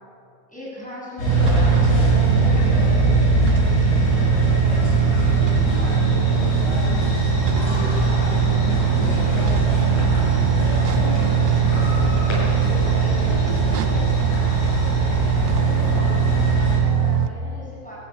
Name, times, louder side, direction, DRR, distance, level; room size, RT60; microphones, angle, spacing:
voice 1, 0.5-6.5 7.5-8.6 12.4-18.0, equal, ahead, -5 dB, 7.4 m, -38 dB
sound 1, 1.2-16.8, left 2 dB, 45° left, 7.7 m, -24 dB
voice 2, 1.3-1.8 4.1-5.0 5.3-6.2 7.3-8.1 8.4-9.8 12.5-12.8, equal, 45° right, -4 dB, 6.5 m, -39 dB
sound 2, 1.3-17.3, right 8 dB, 85° right, 3.0 m, -20 dB
sound 3, 1.7-16.6, left 4 dB, 85° left, 1.6 m, -33 dB
23.0 x 16.0 x 8.6 m, 2.5 s
omnidirectional pair, 5.3 m